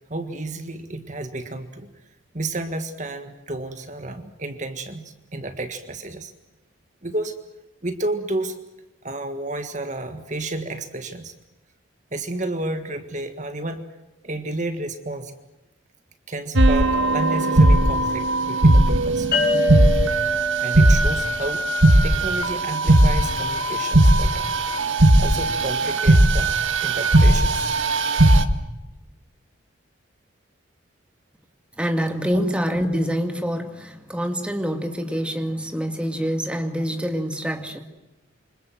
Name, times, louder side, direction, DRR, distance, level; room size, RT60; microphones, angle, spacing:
voice 1, 0.1-1.9 2.3-6.3 7.0-7.4 7.8-8.6 9.0-11.3 12.1-13.8 14.2-15.4 16.3-19.3 20.6-21.7 22.0-24.6 25.2-26.5 26.8-27.7 32.3-32.4, right 2 dB, 35° right, 8 dB, 1.8 m, -31 dB
sound 1, 16.5-28.4, right 1 dB, 80° right, 1.9 m, -18 dB
sound 2, 19.3-22.8, left 1 dB, 50° left, 6.3 m, -27 dB
voice 2, 31.8-37.8, equal, 5° right, 5 dB, 2.1 m, -26 dB
28.0 x 26.0 x 7.8 m, 1.0 s
head